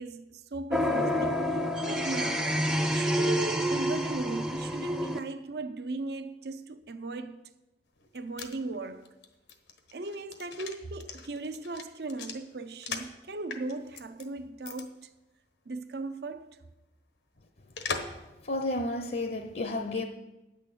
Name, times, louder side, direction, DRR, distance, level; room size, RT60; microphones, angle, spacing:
voice 1, 0.0-2.5 2.8-7.4 8.1-9.2 9.9-15.1 15.7-16.6, right 2 dB, 70° right, 0.6 m, -37 dB
sound 1, 0.7-5.2, equal, 5° right, 0.6 m, -28 dB
sound 2, 8.0-13.2 13.5-14.2 14.6-14.8 15.1-15.2 17.8-18.2 18.6-18.7, left 5 dB, 90° left, 1.2 m, -39 dB
voice 2, 18.5-20.0, left 2 dB, 55° left, 0.7 m, -31 dB
9.1 x 6.5 x 8.3 m
head